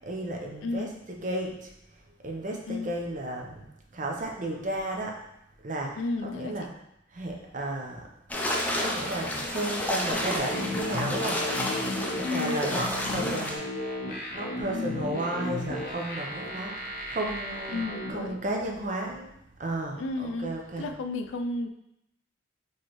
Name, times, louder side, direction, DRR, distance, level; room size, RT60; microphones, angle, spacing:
voice 1, 0.0-1.7 2.2-3.6 3.9-5.2 5.6-6.7 7.1-8.1 8.8-11.4 12.2-14.0 14.3-19.3 19.6-20.9, right 1 dB, 45° right, 1 dB, 0.6 m, -33 dB
voice 2, 0.6-0.9 2.7-2.9 6.0-6.7 12.2-12.6 13.1-13.5 14.7-15.0 17.7-18.4 20.0-20.5 20.8-21.7, left 3 dB, 85° left, 6 dB, 0.4 m, -33 dB
sound 1, 8.3-13.6, left 1 dB, 10° left, 0.4 m, -31 dB
sound 2, 10.1-18.1, left 1 dB, 50° left, 0.8 m, -34 dB
4.5 x 3.1 x 3.0 m, 0.81 s
head